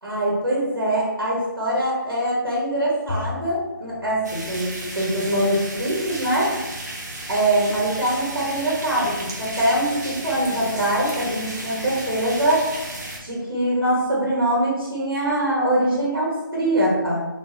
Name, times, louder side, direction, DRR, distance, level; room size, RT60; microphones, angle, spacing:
voice 1, 0.0-6.5 7.3-12.6 13.2-17.3, right 1 dB, 80° right, -5 dB, 1.4 m, -23 dB
Bowed string instrument, 3.1-5.6, left 3 dB, 35° left, 0.4 m, -36 dB
sound 1, 4.2-13.2, right 1 dB, 50° right, 1.0 m, -34 dB
3.8 x 3.4 x 2.9 m, 1.1 s
figure-of-eight pair, 160°, 11 cm